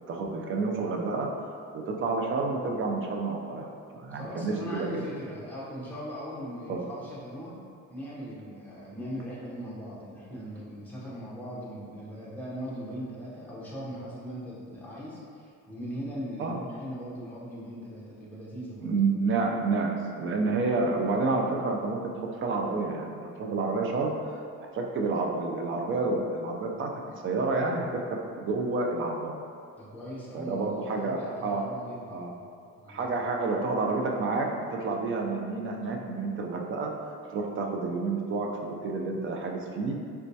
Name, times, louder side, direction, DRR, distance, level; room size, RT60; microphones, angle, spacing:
voice 1, 0.1-3.7 3.9-4.9 6.7-6.8 16.4-16.6 18.8-19.9 20.2-22.1 22.4-24.1 24.7-26.9 27.2-29.3 30.3-31.6 32.1-32.3 32.9-34.5 34.8-40.0, right 3 dB, 40° right, 1 dB, 0.4 m, -29 dB
voice 2, 4.1-7.6 7.9-18.9 29.8-32.2 32.8-33.1, equal, 5° left, -8 dB, 0.7 m, -39 dB
4.1 x 2.2 x 2.6 m, 2.3 s
cardioid pair, 130°, 33 cm